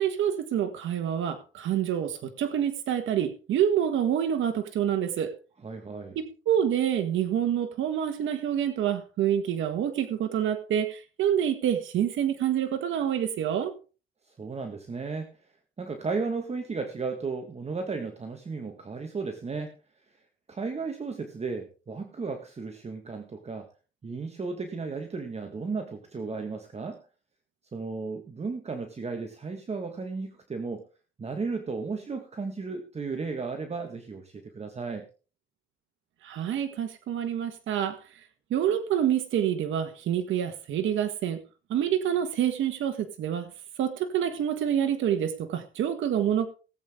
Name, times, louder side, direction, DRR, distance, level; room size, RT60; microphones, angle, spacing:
voice 1, 0.0-5.3 6.1-13.7 36.2-38.0 38.5-41.4 41.7-43.5 43.8-46.5, right 9 dB, 75° right, 1.5 m, -27 dB
voice 2, 5.6-6.2 14.3-15.5 15.8-19.8 20.5-23.7 24.0-27.0 27.7-30.8 31.2-35.1, right 4 dB, 30° right, 1.8 m, -34 dB
18.5 x 8.2 x 3.7 m
cardioid pair, 90°, 20 cm